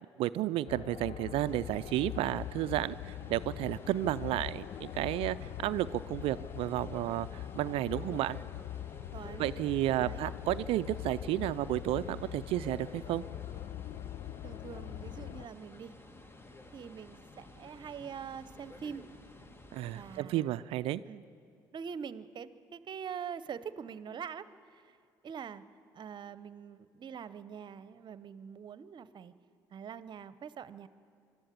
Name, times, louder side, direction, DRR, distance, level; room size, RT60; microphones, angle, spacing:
voice 1, 0.2-8.4 9.4-13.2 19.7-21.0, right 14 dB, 65° right, 15 dB, 0.4 m, -32 dB
sound 1, 0.7-15.5, left 13 dB, 55° left, 0.5 m, -42 dB
sound 2, 1.4-20.2, left 2 dB, 20° left, 1.4 m, -53 dB
voice 2, 9.1-9.5 10.0-10.3 14.4-15.9 16.7-19.1 19.9-20.6 21.1-21.2 21.7-25.0 25.2-25.6 25.9-29.3 29.7-30.9, right 7 dB, 45° right, 15 dB, 0.9 m, -44 dB
25.5 x 12.5 x 8.4 m, 2.3 s
hypercardioid pair, 60°, 11 cm